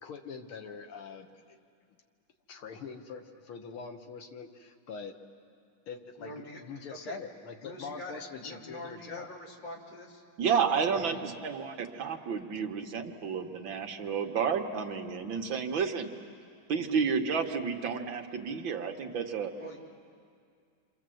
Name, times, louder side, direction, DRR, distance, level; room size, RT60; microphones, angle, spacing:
voice 1, 0.0-1.6 2.5-5.1 5.9-6.3 6.6-9.3 11.1-11.2, left 5 dB, 75° left, 5 dB, 2.1 m, -43 dB
voice 2, 6.2-6.6 6.9-7.2 7.6-10.2 19.6-19.8, left 1 dB, 55° left, -2 dB, 3.8 m, -44 dB
voice 3, 10.4-16.1 16.7-19.5, right 6 dB, 65° right, 4 dB, 1.9 m, -31 dB
29.5 x 26.0 x 7.7 m, 2.3 s
omnidirectional pair, 2.4 m